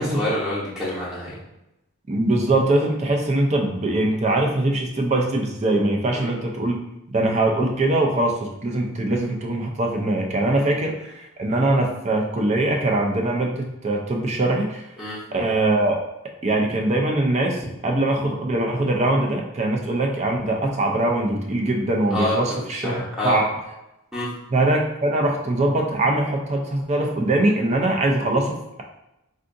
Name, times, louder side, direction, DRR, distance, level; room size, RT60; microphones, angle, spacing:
voice 1, 0.0-1.4 6.1-6.3 10.6-10.7 15.0-15.2 22.1-23.4 24.1-24.3, left 1 dB, ahead, -9 dB, 0.8 m, -27 dB
voice 2, 2.1-6.8 7.1-14.9 15.3-16.0 16.4-23.5 24.5-28.8, right 2 dB, 30° right, 0 dB, 0.4 m, -22 dB
3.6 x 2.5 x 2.5 m, 0.91 s
head